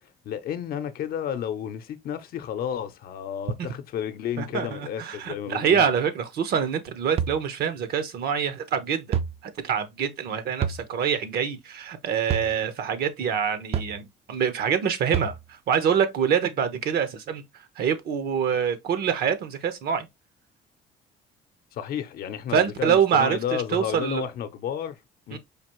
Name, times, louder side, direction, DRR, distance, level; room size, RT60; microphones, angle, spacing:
voice 1, 0.2-5.9 21.7-25.0 25.3-25.4, left 9 dB, 65° left, 0.6 m, -32 dB
voice 2, 4.4-9.2 9.4-20.1 22.5-24.2 25.3-25.4, right 7 dB, 65° right, 0.9 m, -25 dB
sound 1, 7.2-7.4 9.1-9.4 10.6-10.8 12.3-12.5 13.7-14.0 15.1-15.4, right 8 dB, 35° right, 0.4 m, -27 dB
5.0 x 2.5 x 3.0 m
cardioid pair, 110°, 17 cm